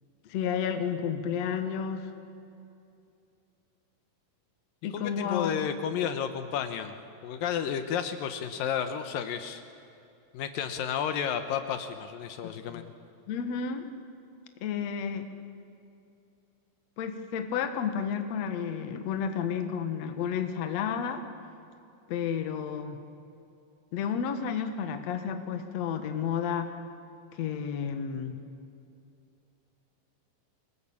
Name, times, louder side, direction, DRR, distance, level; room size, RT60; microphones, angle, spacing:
voice 1, 0.3-2.1 4.8-5.6 12.4-12.9 13.3-13.9 14.6-15.3 17.0-21.2 22.1-23.0 23.9-26.7 27.3-28.4, left 7 dB, 55° left, 7 dB, 2.3 m, -31 dB
voice 2, 4.9-6.9 7.2-9.6 10.3-12.9, left 8 dB, 75° left, 8 dB, 2.7 m, -32 dB
25.5 x 19.5 x 8.7 m, 2.6 s
omnidirectional pair, 4.1 m